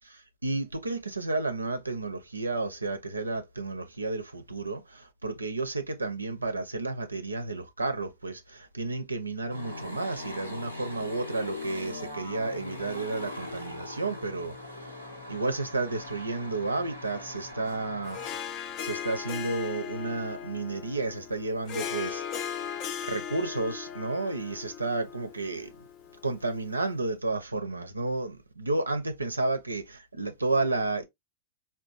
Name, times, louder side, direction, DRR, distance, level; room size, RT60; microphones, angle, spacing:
voice 1, 0.4-14.5 15.3-18.2 18.8-22.2 23.0-25.7 26.2-31.1, right 3 dB, 80° right, 0.4 m, -31 dB
sound 1, 9.5-18.4, left 2 dB, 85° left, 1.0 m, -40 dB
Harp, 18.0-26.7, left 8 dB, 40° left, 0.4 m, -38 dB
3.9 x 2.2 x 2.3 m
figure-of-eight pair, 90°, 0 cm